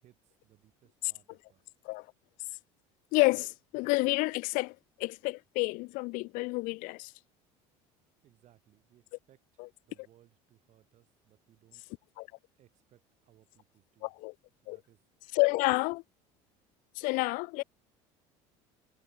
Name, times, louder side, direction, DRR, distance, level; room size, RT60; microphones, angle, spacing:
voice 1, 0.0-1.6 8.2-11.8 12.5-14.2 14.6-15.0, right 13 dB, 55° right, 7.2 m, -65 dB
voice 2, 3.1-7.1 12.2-12.3 14.0-14.3 14.7-14.8 15.3-16.0 17.0-17.6, left 25 dB, 70° left, 0.5 m, -29 dB
supercardioid pair, 110°, 15 cm